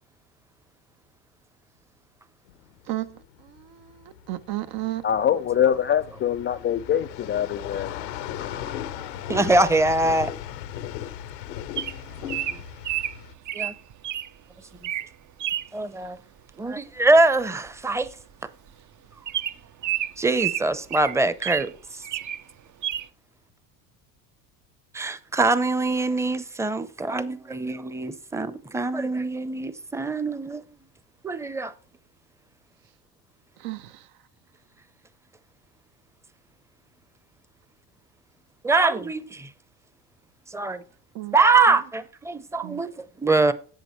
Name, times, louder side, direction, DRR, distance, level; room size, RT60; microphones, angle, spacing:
sound 1, 2.5-13.3, left 11 dB, 90° left, 1.0 m, -37 dB
voice 1, 2.9-3.2 3.4-4.0 4.3-5.0 33.6-34.0 41.1-41.4 42.6-42.8, right 16 dB, 65° right, 1.0 m, -33 dB
voice 2, 5.0-8.0 8.4-8.8, left 9 dB, 25° left, 0.3 m, -24 dB
voice 3, 9.0-10.3 12.5-12.6 13.5-13.7 15.7-16.2 16.6-18.1 20.2-22.0 24.9-30.6 31.2-31.7 38.6-39.5 40.5-40.8 41.3-43.5, right 3 dB, 5° right, 0.7 m, -23 dB
Bird vocalization bird call bird song, 11.8-14.3 14.7-15.1 15.4-15.7 17.2-17.4 17.7-17.8 18.0-18.2 18.7-18.8 19.3-21.7 22.0-22.4 22.8-23.1, right 12 dB, 40° right, 0.7 m, -30 dB
11.0 x 7.7 x 3.2 m
hypercardioid pair, 85°, 48 cm